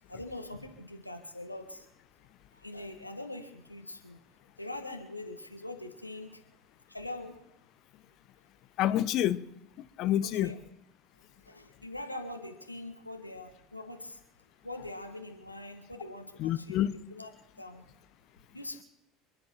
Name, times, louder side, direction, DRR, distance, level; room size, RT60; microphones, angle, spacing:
voice 1, 0.1-1.9 2.5-4.2 4.6-6.4 6.9-7.3 10.2-10.6 11.5-14.2 14.6-16.8 17.1-17.3 17.6-17.9 18.5-18.8, left 1 dB, 90° left, 4 dB, 1.4 m, -42 dB
voice 2, 8.8-9.4 9.8-10.5 16.4-16.9, left 12 dB, 50° left, 15 dB, 0.8 m, -28 dB
27.5 x 10.5 x 4.5 m, 0.81 s
figure-of-eight pair, 70°, 0 cm